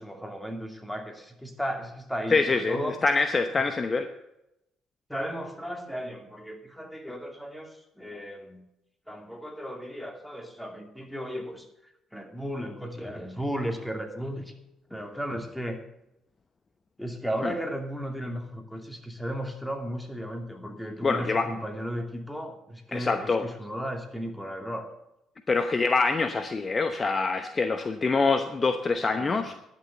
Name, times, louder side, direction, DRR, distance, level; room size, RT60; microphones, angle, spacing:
voice 1, 0.0-3.0 3.8-3.9 5.1-8.6 9.1-11.6 12.1-14.5 14.9-15.8 17.0-24.9 29.2-29.5, equal, 5° left, 4 dB, 2.6 m, -35 dB
voice 2, 2.3-4.1 17.4-17.5 21.0-21.5 22.9-23.5 25.5-29.5, left 4 dB, 35° left, 9 dB, 0.9 m, -25 dB
11.0 x 7.1 x 8.1 m, 0.85 s
hypercardioid pair, 55°, 0 cm